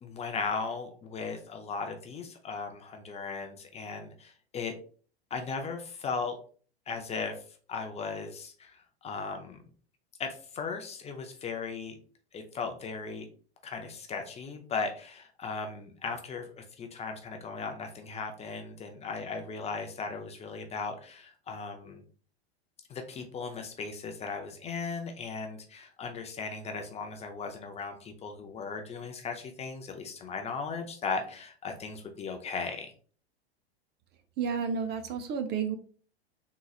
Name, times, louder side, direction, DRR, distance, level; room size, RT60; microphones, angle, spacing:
voice 1, 0.0-4.7 5.3-6.4 6.9-7.4 7.7-8.8 9.0-9.6 10.2-12.0 12.3-13.3 13.6-22.0 22.9-32.9, left 4 dB, 20° left, 4 dB, 0.5 m, -37 dB
voice 2, 34.4-35.8, right 6 dB, 30° right, 8 dB, 0.5 m, -31 dB
3.8 x 2.9 x 2.3 m, 0.43 s
hypercardioid pair, 100°, 32 cm